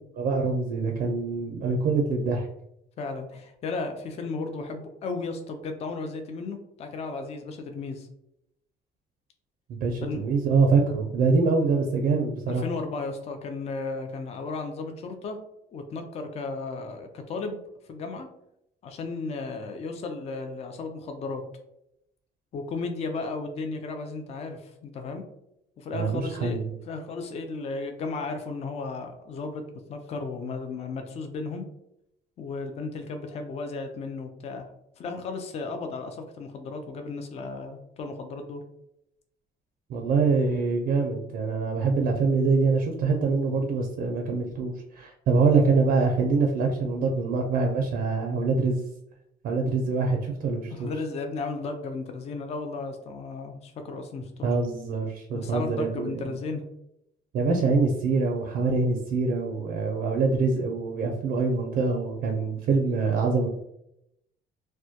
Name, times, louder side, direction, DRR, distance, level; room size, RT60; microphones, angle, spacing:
voice 1, 0.2-2.5 9.7-12.6 25.9-26.7 39.9-48.8 49.4-50.9 54.4-56.3 57.3-63.5, right 4 dB, 60° right, 1 dB, 0.4 m, -24 dB
voice 2, 3.0-8.1 10.0-10.2 12.5-15.4 15.7-17.6 17.9-18.3 18.8-21.4 22.5-25.2 25.8-26.6 26.9-29.6 29.9-31.6 32.4-34.7 35.0-38.6 50.7-54.5 55.3-56.6, left 3 dB, 40° left, 5 dB, 0.4 m, -34 dB
2.2 x 2.1 x 2.7 m, 0.79 s
cardioid pair, 110°, 17 cm